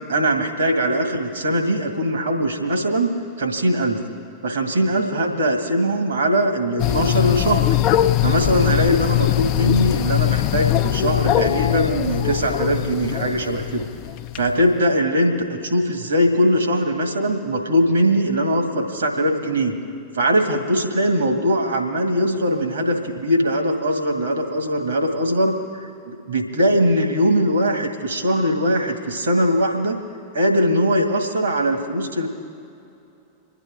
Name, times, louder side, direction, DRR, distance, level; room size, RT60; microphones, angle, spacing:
voice 1, 0.1-3.1 3.4-4.0 4.4-7.6 8.2-13.9 14.4-19.7 20.1-30.0 30.3-32.3, equal, 70° right, 3 dB, 2.1 m, -21 dB
sound 1, 6.8-14.4, left 13 dB, 40° left, 0.6 m, -21 dB
29.0 x 9.9 x 3.7 m, 2.7 s
figure-of-eight pair, 90°, 0 cm